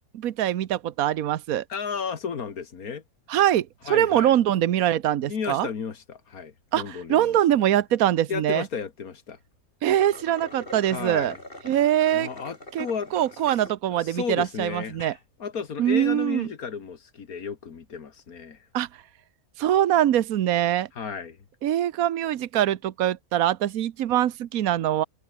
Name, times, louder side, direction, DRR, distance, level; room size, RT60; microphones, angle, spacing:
voice 1, 0.1-1.6 3.3-5.7 6.7-8.6 9.8-11.4 11.6-12.3 12.7-12.9 13.1-15.1 15.8-16.5 18.7-18.9 19.6-20.9 21.6-25.0, right 11 dB, 80° right, 1.3 m, -23 dB
voice 2, 1.7-3.0 3.9-4.4 5.3-7.4 8.3-9.4 10.9-11.4 12.1-13.1 13.9-15.0 15.4-18.6 21.0-21.4, left 6 dB, 90° left, 2.2 m, -33 dB
sound 1, 9.8-13.8 14.3-14.4 14.9-15.2, left 1 dB, 40° left, 8.2 m, -42 dB
omnidirectional pair, 1.5 m